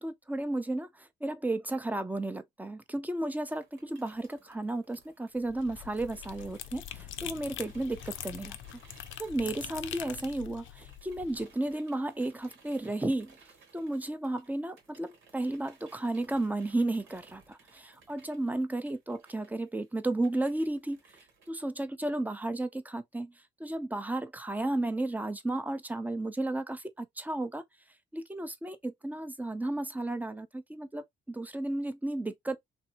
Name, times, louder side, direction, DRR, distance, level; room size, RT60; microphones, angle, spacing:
voice 1, 0.0-8.6 9.2-13.4 13.7-21.0 21.5-23.3 23.6-27.6 28.1-32.6, right 2 dB, 10° right, 0.6 m, -33 dB
sound 1, 3.4-10.4 10.6-21.5, right 4 dB, 80° right, 1.7 m, -60 dB
sound 2, 5.4-11.5, left 11 dB, 75° left, 0.5 m, -43 dB
3.2 x 2.6 x 2.8 m
cardioid pair, 90°, 20 cm